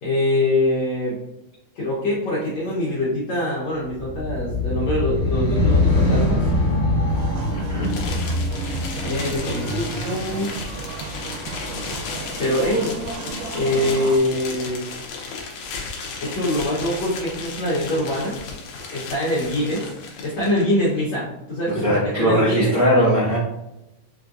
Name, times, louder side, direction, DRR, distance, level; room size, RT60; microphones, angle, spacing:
voice 1, 0.0-1.2 1.7-6.5 9.0-10.5 12.4-12.9 13.5-14.8 16.2-18.4 18.9-19.8 20.2-22.7, left 1 dB, 70° left, -8 dB, 1.6 m, -24 dB
sound 1, 3.9-10.4, left 2 dB, 55° left, 1.5 m, -23 dB
sound 2, 7.1-14.2, right 4 dB, 90° right, 2.6 m, -34 dB
voice 2, 7.5-7.9 21.7-23.4, equal, 70° right, -8 dB, 1.2 m, -20 dB
sound 3, 7.8-20.6, left 4 dB, 90° left, 1.6 m, -34 dB
6.0 x 2.5 x 2.4 m, 0.89 s
omnidirectional pair, 4.3 m